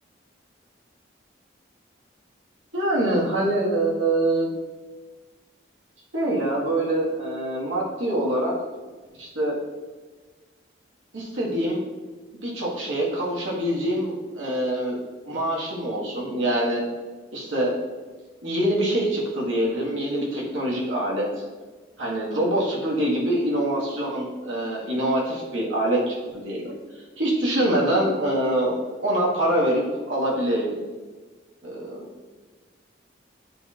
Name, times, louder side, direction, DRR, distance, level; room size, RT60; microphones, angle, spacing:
voice 1, 2.7-4.5 6.1-8.5 9.2-9.6 11.1-11.8 12.4-15.0 15.2-16.8 17.3-17.7 18.4-21.4 22.0-26.7 27.2-30.7 31.6-32.1, right 1 dB, 90° right, -4 dB, 1.7 m, -25 dB
10.5 x 4.2 x 2.5 m, 1.3 s
head